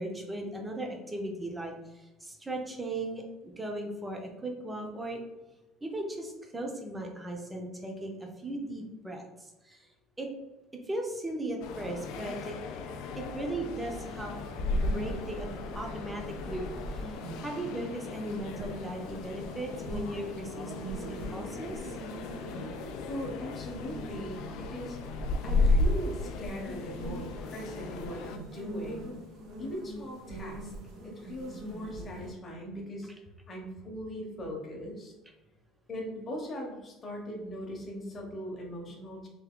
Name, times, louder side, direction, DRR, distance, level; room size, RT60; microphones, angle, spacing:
voice 1, 0.0-5.2 5.8-9.2 9.6-9.8 10.2-10.3 10.9-12.6 13.2-14.4 14.9-15.5 15.7-16.7 17.0-17.1 17.4-21.8, right 1 dB, 10° right, 2 dB, 0.5 m, -37 dB
sound 1, 11.6-28.4, left 2 dB, 60° left, 0.4 m, -34 dB
sound 2, 13.8-32.3, right 1 dB, 70° right, 1.1 m, -43 dB
voice 2, 23.1-25.0 25.4-29.1 29.6-30.7 31.0-33.1 33.5-35.1 35.9-39.3, equal, 20° left, 0 dB, 0.8 m, -40 dB
3.4 x 2.7 x 3.6 m, 1.1 s
cardioid pair, 175°, 0 cm